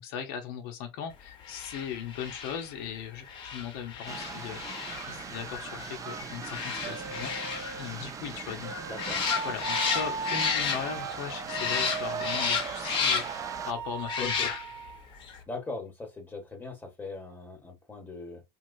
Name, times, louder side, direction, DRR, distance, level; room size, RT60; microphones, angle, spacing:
voice 1, 0.0-8.7 9.4-14.6, left 8 dB, 70° left, 0.9 m, -38 dB
sound 1, 1.4-11.2 11.5-13.5 14.0-14.9 15.2-15.4, left 6 dB, 40° left, 1.1 m, -33 dB
sound 2, 4.1-13.7, right 7 dB, 25° right, 0.3 m, -41 dB
sound 3, 6.8-15.5, right 5 dB, 50° right, 0.9 m, -38 dB
voice 2, 8.9-9.2 14.2-14.5 15.5-18.4, left 3 dB, 15° left, 1.3 m, -40 dB
3.2 x 2.8 x 2.6 m
supercardioid pair, 105°, 13 cm